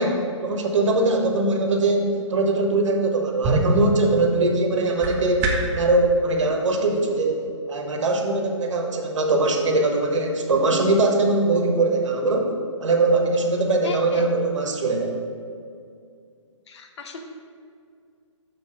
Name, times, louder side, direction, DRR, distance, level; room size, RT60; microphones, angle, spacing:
voice 1, 0.0-7.4 7.7-12.5 12.8-15.2, right 2 dB, 70° right, 2 dB, 1.1 m, -21 dB
sound 1, 3.0-5.8, right 2 dB, 15° right, 0.5 m, -26 dB
voice 2, 13.8-14.3 16.7-17.2, left 4 dB, 60° left, 5 dB, 0.8 m, -36 dB
6.8 x 3.2 x 5.5 m, 2.3 s
hypercardioid pair, 150°, 16 cm